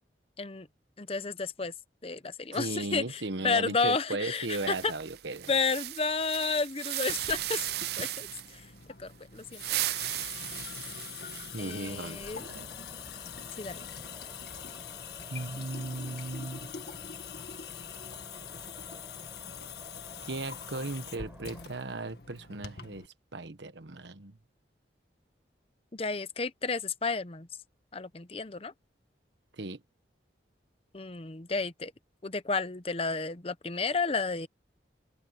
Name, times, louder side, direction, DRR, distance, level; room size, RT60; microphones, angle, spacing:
voice 1, 1.0-1.7 2.0-4.9 5.5-7.6 8.0-8.7 9.0-9.8 11.6-12.5 13.6-13.8 25.9-27.5 27.9-28.7 30.9-31.9 32.2-34.5, left 4 dB, 30° left, 0.8 m, -32 dB
voice 2, 2.5-5.5 11.5-12.7 15.3-16.7 20.3-24.4 29.5-29.8, right 2 dB, 75° right, 1.3 m, -37 dB
sound 1, 4.4-8.6 9.4-11.7, right 14 dB, 60° right, 0.5 m, -36 dB
Water tap faucet / Sink (filling or washing) / Drip, 7.1-23.1, left 7 dB, 60° left, 2.0 m, -44 dB
sound 2, 11.9-21.7, equal, 10° right, 5.3 m, -53 dB
head